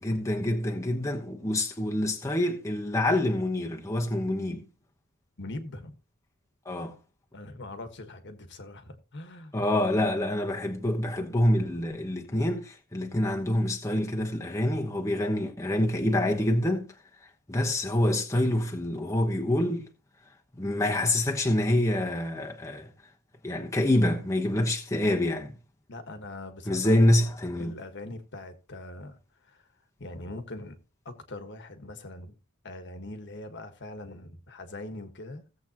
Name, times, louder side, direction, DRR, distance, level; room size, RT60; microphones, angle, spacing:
voice 1, 0.0-4.6 6.7-7.0 9.5-16.9 17.5-19.9 20.6-22.9 23.4-25.5 26.7-27.8, left 1 dB, 15° left, 1.0 m, -26 dB
voice 2, 5.4-5.9 7.3-9.5 25.9-27.1 27.6-29.2 29.4-29.6 30.0-30.8 31.0-32.4 32.6-35.4, left 2 dB, 55° left, 1.4 m, -42 dB
16.5 x 7.7 x 2.9 m
head